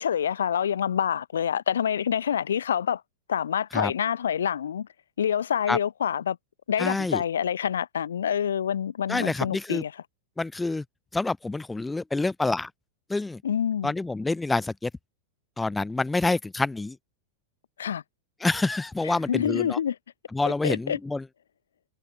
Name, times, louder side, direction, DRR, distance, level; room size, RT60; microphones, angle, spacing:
voice 1, 0.0-3.0 3.3-4.9 5.2-6.4 6.7-10.0 13.4-13.9 17.8-18.0 19.0-20.0 20.6-21.0, left 8 dB, 65° left, 0.7 m, -27 dB
voice 2, 6.8-7.2 9.1-9.8 10.4-10.8 11.1-12.7 13.1-13.4 13.8-14.9 15.6-17.0 18.4-19.8 20.3-21.2, left 3 dB, 10° left, 0.7 m, -27 dB
figure-of-eight pair, 90°, 0 cm